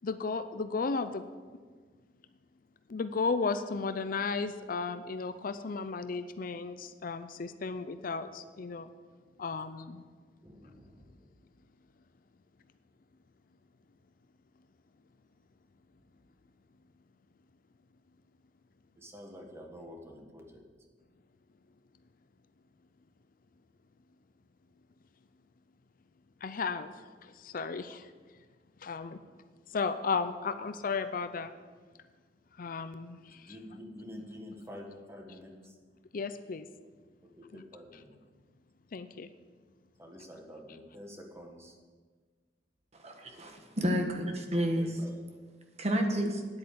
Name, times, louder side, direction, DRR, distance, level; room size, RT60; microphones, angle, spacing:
voice 1, 0.0-1.2 2.9-8.9 9.4-10.0 26.4-26.9 27.2-28.1 28.8-29.2 29.7-31.5 32.6-33.5 36.1-36.7 37.5-37.6 38.9-39.3, left 4 dB, 50° left, 11 dB, 0.5 m, -34 dB
voice 2, 10.4-11.4 19.0-20.6 33.3-35.7 37.2-38.1 40.0-41.8 43.2-43.3 44.8-45.2, left 1 dB, 15° right, 1 dB, 1.6 m, -48 dB
voice 3, 43.0-44.9 45.8-46.4, equal, 40° right, 4 dB, 1.4 m, -30 dB
9.8 x 8.5 x 6.9 m, 1.5 s
head